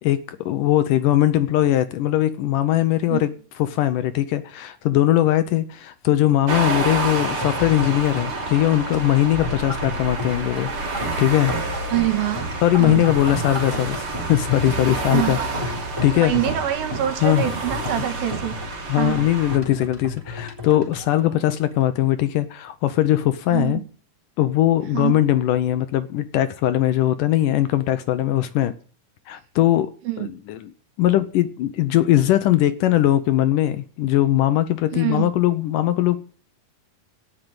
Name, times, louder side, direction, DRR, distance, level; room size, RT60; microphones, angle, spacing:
voice 1, 0.0-3.3 3.6-10.7 11.2-11.5 12.6-14.0 14.3-15.4 16.0-16.3 17.2-17.5 18.9-23.8 24.4-28.7 29.3-29.9 30.2-30.7 31.0-36.3, left 13 dB, 75° left, 2.1 m, -20 dB
sound 1, 6.5-19.6, right 2 dB, 40° right, 3.2 m, -29 dB
sound 2, 7.2-22.0, left 1 dB, 5° right, 3.3 m, -33 dB
voice 2, 11.9-12.5 12.8-13.0 15.1-15.6 16.1-18.6 19.0-19.2 23.5-23.8 24.9-25.2 30.1-30.3 34.9-35.3, right 13 dB, 75° right, 3.4 m, -25 dB
16.5 x 6.6 x 8.9 m
omnidirectional pair, 4.3 m